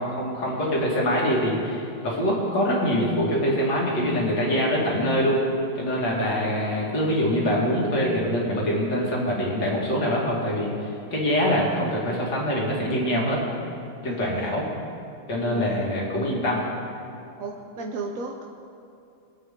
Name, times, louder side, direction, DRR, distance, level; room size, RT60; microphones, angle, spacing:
voice 1, 0.0-5.4 5.8-13.4 14.0-14.6 15.3-16.7, equal, 55° left, -4 dB, 2.9 m, -24 dB
voice 2, 14.0-14.6 15.4-15.8 17.4-18.4, right 3 dB, 60° right, 1 dB, 0.9 m, -34 dB
22.5 x 8.4 x 3.8 m, 2.5 s
omnidirectional pair, 2.3 m